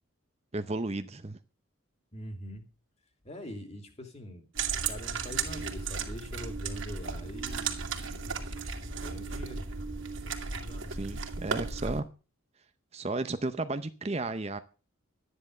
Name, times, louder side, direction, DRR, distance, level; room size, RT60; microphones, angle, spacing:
voice 1, 0.5-1.4 10.9-12.1 12.9-14.6, right 2 dB, 30° right, 10 dB, 0.7 m, -33 dB
voice 2, 2.1-2.6 3.2-4.4 4.8-8.3 8.8-9.6 10.2-11.1, equal, 30° left, 6 dB, 2.9 m, -44 dB
sound 1, 4.6-12.0, right 5 dB, 60° right, 2.5 m, -35 dB
13.0 x 10.0 x 6.6 m, 0.35 s
head